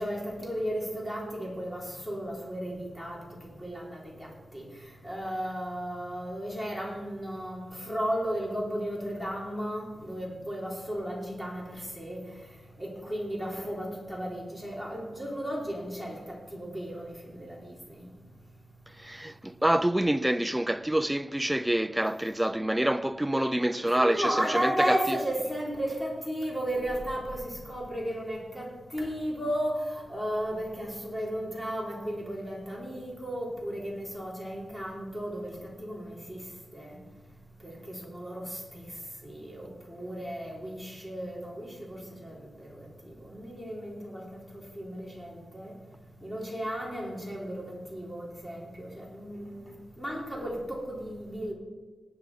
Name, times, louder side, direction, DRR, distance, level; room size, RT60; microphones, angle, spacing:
voice 1, 0.0-3.2 3.6-4.6 5.0-12.3 12.8-18.1 23.8-36.4 36.7-37.0 37.6-38.9 39.2-45.7 46.2-51.5, equal, 10° left, 3.3 m, -34 dB
voice 2, 19.0-25.2, right 1 dB, 5° right, 0.4 m, -27 dB
18.0 x 9.8 x 4.9 m
wide cardioid pair, 140°, 0 cm